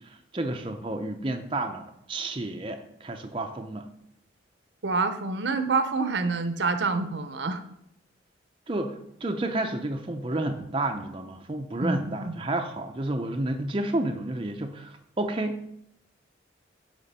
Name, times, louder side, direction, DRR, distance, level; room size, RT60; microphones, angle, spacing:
voice 1, 0.0-3.9 8.7-15.8, right 2 dB, 25° right, 4 dB, 0.5 m, -31 dB
voice 2, 4.8-7.6 11.8-12.4, right 4 dB, 70° right, 9 dB, 0.8 m, -27 dB
11.0 x 3.7 x 5.5 m, 0.77 s
head